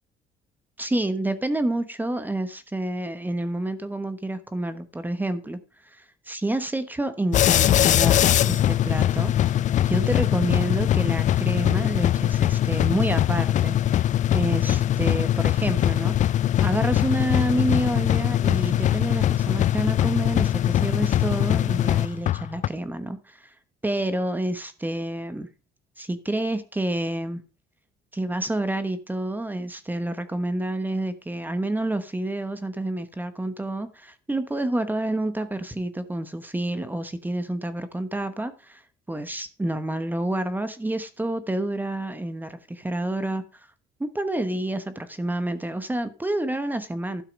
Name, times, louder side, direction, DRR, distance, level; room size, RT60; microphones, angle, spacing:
voice 1, 0.8-5.6 5.9-9.5 9.9-14.0 14.3-16.3 16.6-23.5 23.8-25.5 26.0-27.4 28.1-38.8 39.1-43.4 44.0-47.2, right 1 dB, 10° right, 11 dB, 1.1 m, -28 dB
sound 1, 7.3-22.7, left 12 dB, 45° left, 0.4 m, -22 dB
12.0 x 6.4 x 5.2 m, 0.35 s
cardioid pair, 110°, 17 cm